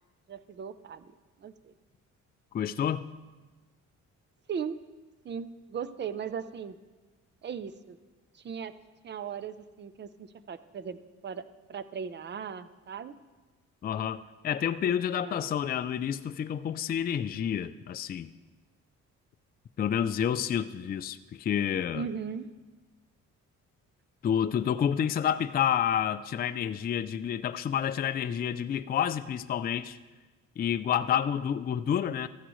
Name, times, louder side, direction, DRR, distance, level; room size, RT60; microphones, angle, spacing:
voice 1, 0.3-1.1 1.4-1.7 4.5-4.8 5.2-6.8 7.4-8.0 8.3-8.7 9.0-11.0 11.2-13.1 15.2-15.6 21.9-22.5, right 7 dB, 35° right, 14 dB, 0.6 m, -38 dB
voice 2, 2.5-3.1 13.8-18.3 19.8-22.1 24.2-30.0 30.6-32.3, left 9 dB, 30° left, 11 dB, 0.4 m, -29 dB
14.0 x 9.9 x 3.1 m, 1.2 s
cardioid pair, 90°, 30 cm